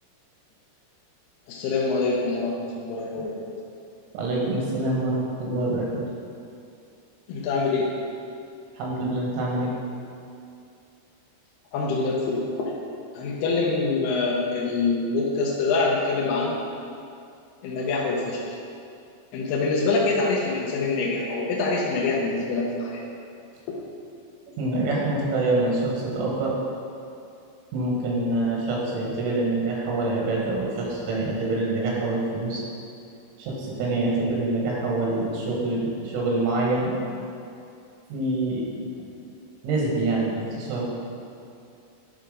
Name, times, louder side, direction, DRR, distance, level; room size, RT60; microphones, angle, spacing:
voice 1, 1.5-3.4 7.3-7.9 11.7-12.7 13.1-16.6 17.6-18.6 19.3-23.0 23.7-23.8, left 3 dB, 75° left, -3 dB, 2.5 m, -25 dB
voice 2, 4.1-6.0 8.8-9.7 24.6-26.5 27.7-32.6 33.4-37.0 38.1-38.7 39.0-39.1 39.6-40.9, right 2 dB, 90° right, -3 dB, 4.0 m, -26 dB
11.5 x 4.4 x 5.0 m, 2.5 s
omnidirectional pair, 5.3 m